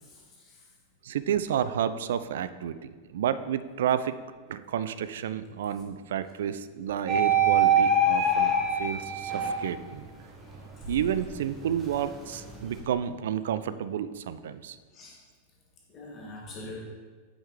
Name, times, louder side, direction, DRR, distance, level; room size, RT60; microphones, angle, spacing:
voice 1, 0.0-0.7 10.8-10.9 14.9-15.1 15.9-16.8, left 2 dB, 30° left, -2 dB, 1.5 m, -44 dB
voice 2, 1.0-4.2 4.5-10.1 10.9-14.8, right 9 dB, 60° right, 12 dB, 0.3 m, -31 dB
sound 1, 7.1-9.9 10.4-12.8, right 2 dB, 20° right, 1.3 m, -25 dB
8.6 x 5.3 x 3.2 m, 1.5 s
figure-of-eight pair, 90°, 0 cm